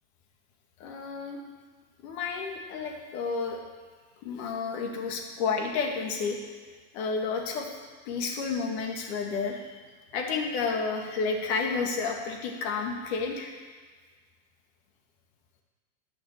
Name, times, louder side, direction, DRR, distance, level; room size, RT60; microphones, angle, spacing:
voice 1, 0.8-1.4 2.0-3.6 4.2-6.4 6.9-7.7 8.1-9.8 10.1-13.5, left 4 dB, 55° left, 2 dB, 2.1 m, -31 dB
11.0 x 6.1 x 7.5 m, 1.5 s
supercardioid pair, 135°, 39 cm